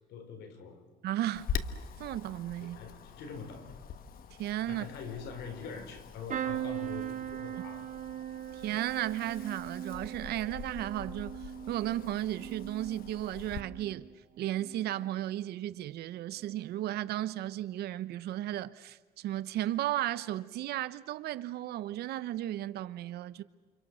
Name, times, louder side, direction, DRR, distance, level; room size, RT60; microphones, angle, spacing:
voice 1, 0.1-0.9 2.6-3.8 4.7-7.9, left 5 dB, 80° left, 3.9 m, -44 dB
voice 2, 1.0-1.5 2.0-2.8 4.4-4.9 8.5-14.1 14.4-23.4, right 13 dB, 75° right, 1.0 m, -34 dB
Wind, 1.3-13.6, left 7 dB, 60° left, 1.3 m, -44 dB
sound 1, 6.3-14.1 14.6-15.1 16.4-16.6 16.8-16.9, right 10 dB, 50° right, 1.8 m, -40 dB
29.0 x 28.0 x 6.4 m
cardioid pair, 110°, 17 cm